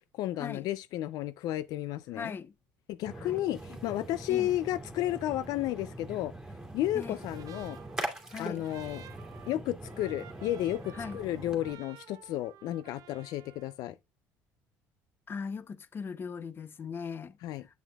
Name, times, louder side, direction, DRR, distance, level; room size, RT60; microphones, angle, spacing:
voice 1, 0.1-2.4 2.9-6.3 6.7-7.8 8.4-9.0 9.5-14.0 17.4-17.7, left 14 dB, 70° left, 0.4 m, -32 dB
voice 2, 2.1-2.5 3.2-3.4 4.3-4.5 6.9-7.2 8.3-8.7 10.9-11.2 15.3-17.4, left 5 dB, 35° left, 0.7 m, -39 dB
Splash splatter, 3.1-11.7, right 1 dB, 10° right, 2.3 m, -42 dB
Trumpet, 7.0-13.8, right 11 dB, 60° right, 0.8 m, -53 dB
8.3 x 7.3 x 2.3 m
supercardioid pair, 95°, 7 cm